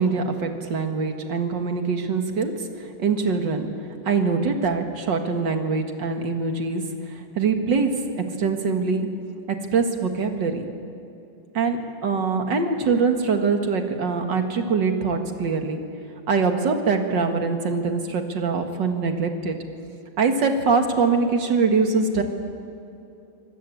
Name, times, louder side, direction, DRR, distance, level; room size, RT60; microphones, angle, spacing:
voice 1, 0.0-2.5 3.0-3.7 4.1-6.8 7.4-7.9 8.2-9.1 9.5-10.6 11.5-15.8 16.3-19.6 20.2-22.2, right 4 dB, 60° right, 5 dB, 2.4 m, -23 dB
25.5 x 19.5 x 8.5 m, 2.7 s
omnidirectional pair, 2.3 m